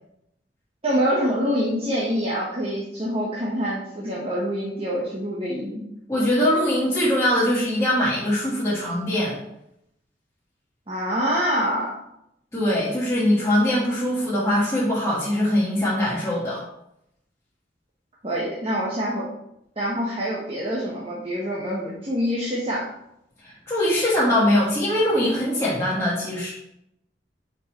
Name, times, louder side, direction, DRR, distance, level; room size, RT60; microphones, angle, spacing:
voice 1, 0.8-5.8 10.9-11.9 18.2-19.3 19.8-22.9, equal, 35° right, -5 dB, 1.1 m, -25 dB
voice 2, 6.1-9.3 12.5-16.6 23.4-26.5, left 1 dB, 15° left, -10 dB, 1.5 m, -22 dB
5.5 x 4.7 x 4.2 m, 0.80 s
head